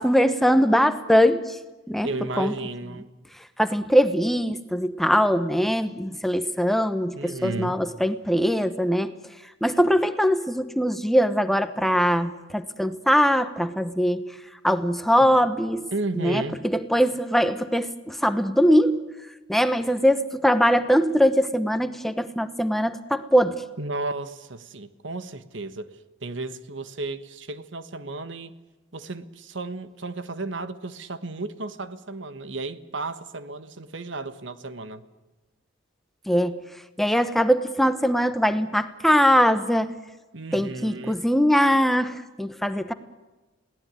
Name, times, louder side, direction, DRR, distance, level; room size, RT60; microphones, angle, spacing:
voice 1, 0.0-1.6 1.9-2.1 2.4-2.5 3.6-9.1 9.6-14.2 14.6-15.9 16.1-19.0 19.5-23.6 36.3-36.6 37.0-39.9 40.5-42.9, equal, ahead, 10 dB, 1.0 m, -21 dB
voice 2, 2.0-3.1 7.2-7.8 15.9-16.6 23.8-25.9 26.2-28.5 28.9-35.0 40.3-41.2, right 2 dB, 70° right, 12 dB, 1.4 m, -33 dB
22.0 x 17.5 x 9.5 m, 1.1 s
head